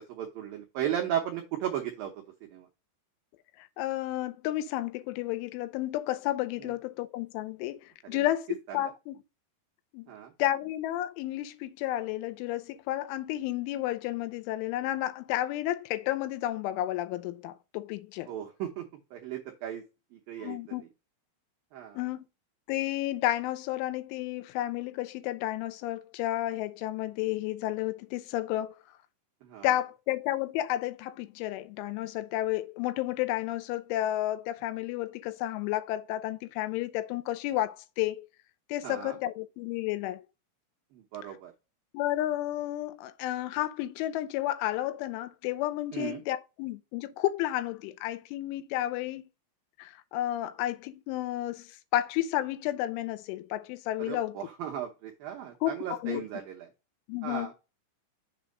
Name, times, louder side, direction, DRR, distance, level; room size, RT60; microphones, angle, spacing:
voice 1, 0.1-2.1 2.4-2.7 6.6-6.7 8.1-8.2 10.1-10.3 18.3-18.8 19.1-19.8 20.1-20.6 21.7-22.0 29.4-29.7 38.8-39.2 40.9-41.5 45.9-46.2 54.0-56.7 57.2-57.5, right 10 dB, 85° right, 2.0 m, -35 dB
voice 2, 3.6-9.2 9.9-10.1 10.4-18.3 20.4-20.8 22.0-22.3 22.7-28.8 29.6-38.3 38.7-40.2 41.9-49.2 49.8-54.4 55.6-56.2 57.1-57.5, left 14 dB, 85° left, 3.2 m, -32 dB
7.4 x 3.4 x 5.2 m
omnidirectional pair, 5.5 m